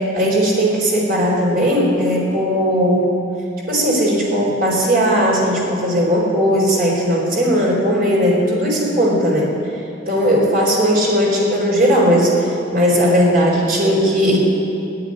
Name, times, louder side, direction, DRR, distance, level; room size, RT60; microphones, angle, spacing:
voice 1, 0.0-3.1 3.7-9.5 10.1-12.3 12.7-14.4, equal, 55° right, -2 dB, 4.5 m, -17 dB
13.0 x 10.5 x 9.9 m, 2.7 s
head